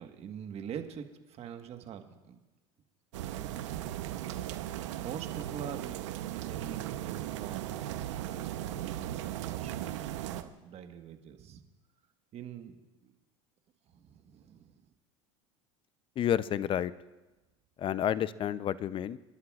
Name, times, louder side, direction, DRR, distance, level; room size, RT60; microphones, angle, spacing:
voice 1, 0.0-2.4 3.2-4.5 5.0-6.0 6.5-11.6 12.3-12.8 13.0-13.1 13.9-14.8, right 8 dB, 45° right, 6 dB, 1.4 m, -45 dB
sound 1, 3.1-10.4, right 13 dB, 80° right, 0.8 m, -37 dB
voice 2, 16.2-16.9 17.8-19.2, left 10 dB, 35° left, 16 dB, 0.5 m, -30 dB
29.5 x 11.5 x 2.4 m, 1.1 s
supercardioid pair, 100°, 15 cm